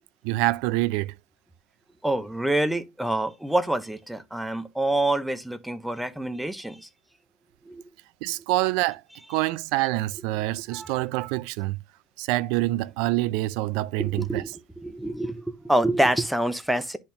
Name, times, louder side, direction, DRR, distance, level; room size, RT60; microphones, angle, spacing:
voice 1, 0.2-1.1 8.2-9.0 9.3-11.8 12.2-14.4, right 18 dB, 75° right, 0.4 m, -26 dB
voice 2, 2.0-6.9 7.7-7.8 9.3-9.5 10.7-11.0 14.0-14.5 14.8-17.0, right 1 dB, 5° right, 0.5 m, -26 dB
10.5 x 4.3 x 2.6 m
cardioid pair, 175°, 0 cm